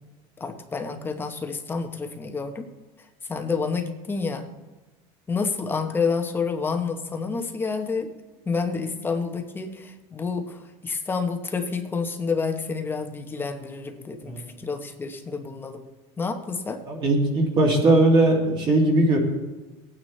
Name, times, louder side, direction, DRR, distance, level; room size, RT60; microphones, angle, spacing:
voice 1, 0.4-2.6 3.3-4.5 5.3-8.1 8.5-15.8 16.2-16.8, left 4 dB, 15° left, 5 dB, 1.0 m, -29 dB
voice 2, 16.8-19.2, right 2 dB, 35° right, -1 dB, 2.6 m, -19 dB
18.0 x 9.4 x 3.2 m, 1.2 s
cardioid pair, 155°, 14 cm